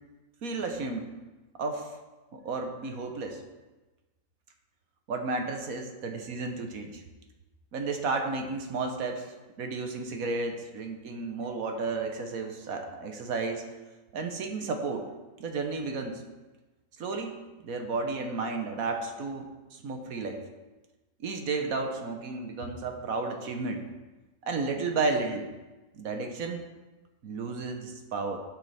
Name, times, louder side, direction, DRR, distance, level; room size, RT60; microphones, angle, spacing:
voice 1, 0.4-1.1 1.6-1.9 2.3-3.4 5.1-7.0 7.7-13.6 14.1-15.1 15.4-16.2 17.0-17.4 17.6-20.4 21.2-23.9 24.4-25.5 25.9-26.6 27.2-28.4, right 3 dB, 75° right, 4 dB, 1.4 m, -32 dB
11.5 x 6.7 x 3.4 m, 1.2 s
omnidirectional pair, 1.5 m